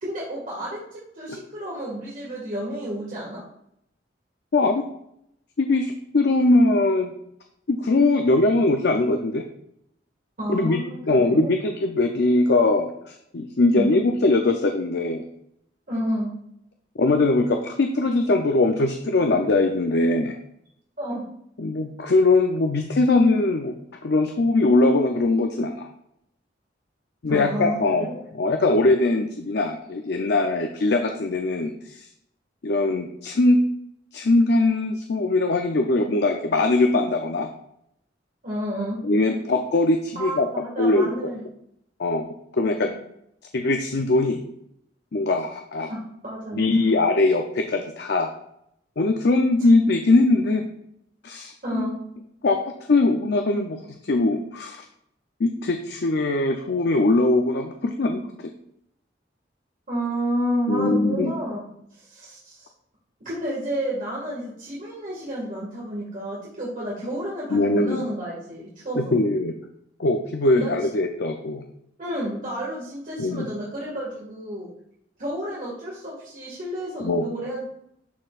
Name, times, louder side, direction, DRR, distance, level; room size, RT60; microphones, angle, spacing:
voice 1, 0.0-3.4 10.4-11.5 13.7-14.0 15.9-16.3 21.0-21.2 27.3-28.2 38.4-39.0 40.2-41.4 45.9-46.6 51.6-51.9 59.9-61.6 61.9-62.7 63.3-69.2 70.5-70.7 72.0-74.7 75.2-77.6, right 1 dB, 45° right, -6 dB, 1.8 m, -30 dB
voice 2, 4.5-4.8 5.6-7.1 7.7-9.4 10.5-10.8 11.1-15.2 17.0-20.4 21.6-23.8 24.0-25.9 27.2-28.1 28.3-32.0 32.6-33.6 34.1-37.5 39.0-40.5 40.8-41.3 42.0-42.3 42.5-42.9 43.5-44.4 45.1-45.9 46.5-48.3 49.0-50.7 51.2-51.8 52.4-53.8 54.0-54.8 55.4-58.5 60.7-61.3 67.5-68.1 69.1-69.5 70.0-71.6 73.2-73.5 77.0-77.2, left 2 dB, 65° left, 4 dB, 0.6 m, -21 dB
11.5 x 4.4 x 2.4 m, 0.74 s
head